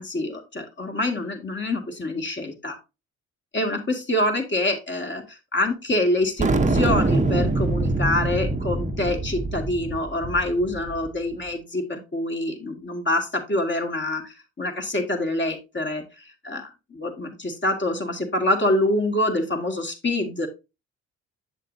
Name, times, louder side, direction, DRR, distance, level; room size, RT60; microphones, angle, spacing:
voice 1, 0.0-2.8 3.5-16.0 16.4-20.5, left 1 dB, 35° left, 3 dB, 2.0 m, -26 dB
sound 1, 6.4-11.1, right 2 dB, 20° right, 1.0 m, -24 dB
7.3 x 7.1 x 2.7 m, 0.26 s
hypercardioid pair, 50°, 34 cm